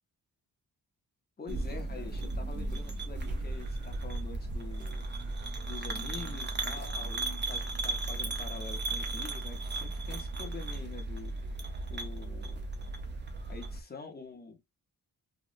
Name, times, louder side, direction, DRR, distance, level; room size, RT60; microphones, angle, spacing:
voice 1, 1.4-5.1 5.7-11.3 11.9-12.6 13.5-14.6, left 4 dB, 25° left, 0.7 m, -46 dB
sound 1, 1.5-13.8, right 2 dB, 30° right, 0.4 m, -36 dB
sound 2, 1.6-8.1, right 2 dB, 55° right, 0.9 m, -58 dB
2.9 x 2.0 x 2.4 m
wide cardioid pair, 115°, 36 cm